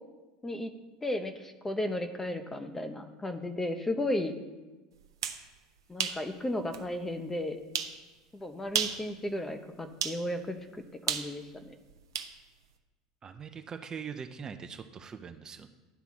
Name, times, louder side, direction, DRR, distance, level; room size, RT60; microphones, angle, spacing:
voice 1, 1.0-4.3 5.9-7.6 8.3-11.8, left 1 dB, 15° left, 8 dB, 0.8 m, -34 dB
sound 1, 5.0-5.4 6.0-6.2 6.7-6.8 7.7-8.0 8.7-9.0 10.0-10.2 11.1-12.3, right 8 dB, 85° right, 0.6 m, -32 dB
voice 2, 13.2-15.7, right 6 dB, 30° right, 7 dB, 0.6 m, -42 dB
10.0 x 3.5 x 6.0 m, 1.2 s
hypercardioid pair, 85°, 2 cm